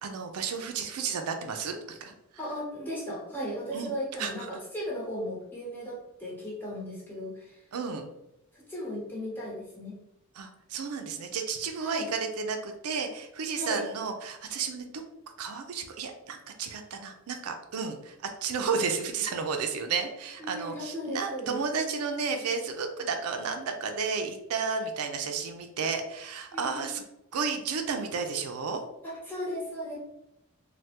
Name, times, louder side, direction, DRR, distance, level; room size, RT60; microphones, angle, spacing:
voice 1, 0.0-2.1 3.7-3.9 4.2-4.3 7.7-8.1 10.4-15.0 15.4-27.0 27.3-28.8, right 5 dB, 85° right, 5 dB, 0.4 m, -32 dB
voice 2, 2.4-7.6 8.5-9.9 11.8-12.1 13.5-13.8 20.4-21.6 26.5-26.9 29.0-30.0, equal, 10° left, -5 dB, 0.9 m, -36 dB
3.3 x 2.2 x 2.8 m, 0.85 s
head